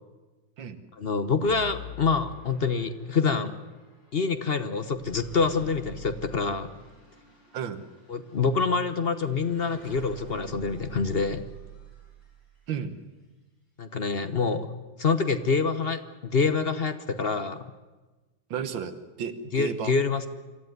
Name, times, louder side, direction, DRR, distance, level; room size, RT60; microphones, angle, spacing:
voice 1, 1.0-3.6 4.1-6.7 8.1-11.4 13.8-14.7 15.0-17.7 19.5-20.3, left 4 dB, 45° left, 10 dB, 0.9 m, -26 dB
sound 1, 1.4-12.7, equal, 90° left, 8.8 m, -46 dB
voice 2, 18.5-20.0, right 7 dB, 90° right, 11 dB, 1.9 m, -33 dB
25.5 x 14.0 x 9.4 m, 1.2 s
omnidirectional pair, 2.0 m